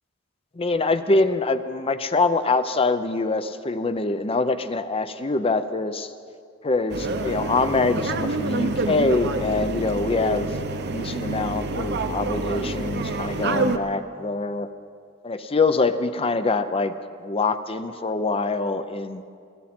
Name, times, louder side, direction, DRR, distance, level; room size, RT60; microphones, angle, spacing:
voice 1, 0.6-6.1 6.6-14.7 15.2-16.9 17.2-19.2, left 3 dB, 30° left, 11 dB, 0.6 m, -24 dB
sound 1, 6.9-13.8, right 2 dB, 55° right, 0.8 m, -27 dB
22.5 x 14.0 x 4.4 m, 2.3 s
head